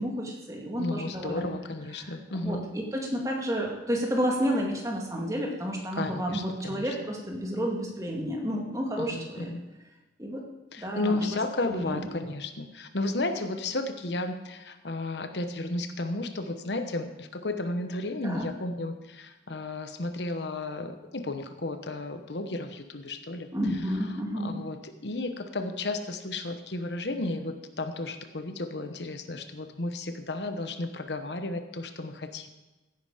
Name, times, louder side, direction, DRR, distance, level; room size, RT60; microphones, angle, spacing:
voice 1, 0.0-1.5 2.3-9.5 10.2-10.4 10.8-11.3 11.7-12.1 18.2-18.5 23.5-24.7, equal, 20° right, 0 dB, 2.1 m, -31 dB
voice 2, 0.8-2.7 5.9-6.9 9.0-9.6 10.7-23.5 24.3-32.5, left 2 dB, 75° left, 8 dB, 1.1 m, -33 dB
15.5 x 9.8 x 5.0 m, 1.1 s
head